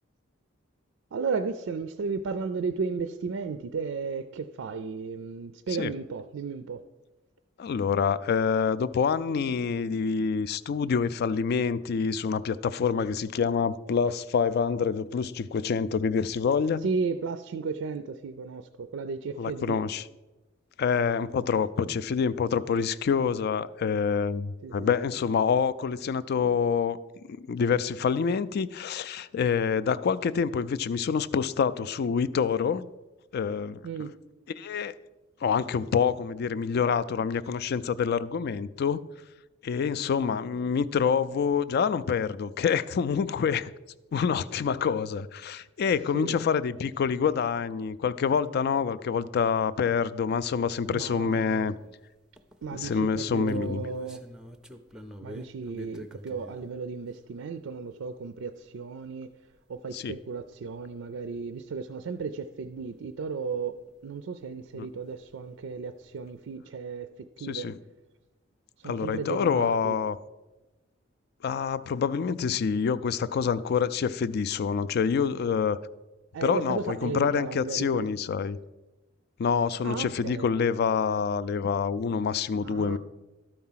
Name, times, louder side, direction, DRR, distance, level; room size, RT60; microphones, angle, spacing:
voice 1, 1.1-6.8 16.8-19.8 24.6-24.9 33.8-34.2 46.1-46.4 50.9-51.8 52.6-54.2 55.2-59.3 59.7-67.7 68.8-70.0 76.3-78.1 79.8-80.5 82.6-83.0, right 5 dB, 70° right, 0.4 m, -34 dB
voice 2, 7.6-16.9 19.4-20.0 20.8-27.0 27.3-32.9 33.3-33.8 34.6-35.0 35.4-39.0 39.6-43.7 44.1-51.7 52.7-53.8 59.9-60.1 64.7-64.9 67.5-67.7 68.8-70.2 71.4-75.8 76.4-78.6 79.4-83.0, left 6 dB, 50° left, 0.3 m, -27 dB
sound 1, 50.4-50.5 50.9-52.0 52.4-56.7 59.3-59.4 59.6-59.7 60.7-60.8 61.4-61.5 65.1-65.2 65.3-65.8, equal, 5° right, 0.5 m, -45 dB
12.0 x 4.7 x 5.6 m
head